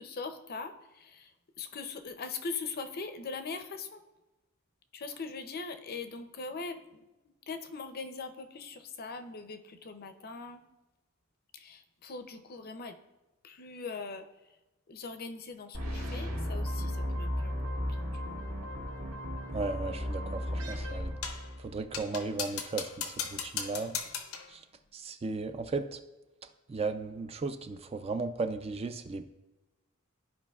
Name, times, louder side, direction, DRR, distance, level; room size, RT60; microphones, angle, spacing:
voice 1, 0.0-4.0 4.9-10.6 11.5-13.0 13.4-14.6 14.9-18.4, left 4 dB, 45° left, 8 dB, 0.5 m, -41 dB
sound 1, 15.7-21.9, equal, 70° right, 1.8 m, -35 dB
voice 2, 19.5-21.2 21.6-23.9 24.5-24.6 24.9-26.0 26.7-29.3, right 3 dB, 30° right, 8 dB, 0.3 m, -35 dB
sound 2, 21.2-21.5 21.9-24.5, left 7 dB, 90° left, 0.7 m, -37 dB
13.0 x 4.9 x 2.3 m, 1.0 s
head